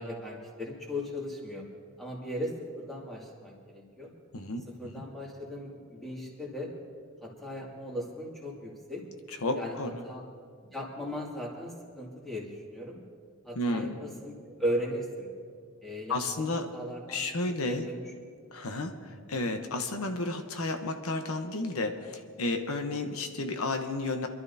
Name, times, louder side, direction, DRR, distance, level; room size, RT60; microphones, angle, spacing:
voice 1, 0.0-1.6 2.0-4.1 4.8-6.7 7.2-9.0 9.6-9.8 10.0-10.2 10.7-13.0 13.4-15.3 15.8-16.4 16.7-18.0, equal, ahead, -4 dB, 2.3 m, -37 dB
voice 2, 4.3-4.7 4.9-5.0 9.3-10.0 13.5-14.0 16.1-16.7 17.1-17.9 18.5-24.3, left 2 dB, 90° left, 6 dB, 1.0 m, -32 dB
26.0 x 12.5 x 2.7 m, 2.1 s
head